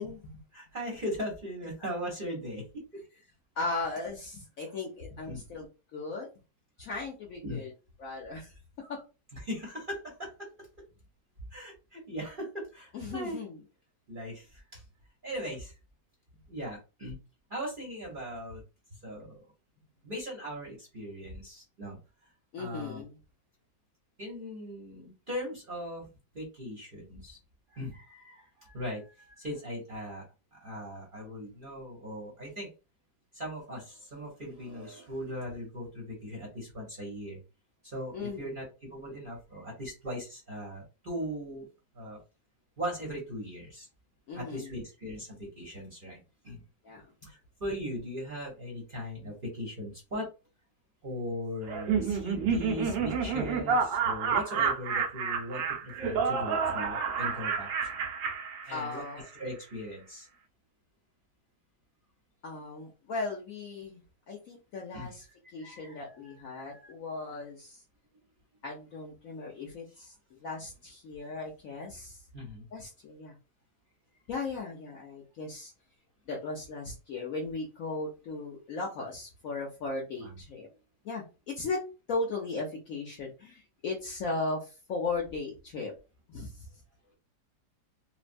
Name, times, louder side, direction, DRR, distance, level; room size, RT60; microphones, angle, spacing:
voice 1, 0.0-0.4 3.6-5.7 5.9-6.3 6.8-7.7 8.0-8.5 8.8-9.0 12.9-13.6 22.5-23.1 38.1-38.5 44.3-44.7 46.8-47.0 58.7-59.2 62.4-64.0 64.3-65.2 65.5-67.8 68.6-70.1 70.4-72.2 72.7-73.4 74.3-75.7 76.3-80.7 81.0-81.8 82.1-85.9 86.3-86.5, left 3 dB, 65° left, -1 dB, 0.9 m, -37 dB
voice 2, 0.5-2.7 4.7-4.8 5.3-5.4 7.4-7.6 9.3-10.5 11.5-13.4 14.1-14.8 15.2-15.7 16.5-17.2 17.5-18.6 19.0-19.3 20.0-22.0 22.6-23.0 24.2-26.1 26.3-27.4 27.7-30.2 30.5-32.7 33.3-37.4 37.8-41.7 41.9-42.2 42.8-43.9 44.3-46.2 46.4-46.6 47.3-50.3 51.0-57.9 58.7-59.0 59.3-60.3 64.9-65.1 65.6-66.9 72.3-72.7 80.2-80.3, equal, 40° right, -3 dB, 0.8 m, -39 dB
Laughter, 51.7-59.2, right 6 dB, 90° right, 1.4 m, -30 dB
3.2 x 2.1 x 2.5 m, 0.30 s
omnidirectional pair, 1.9 m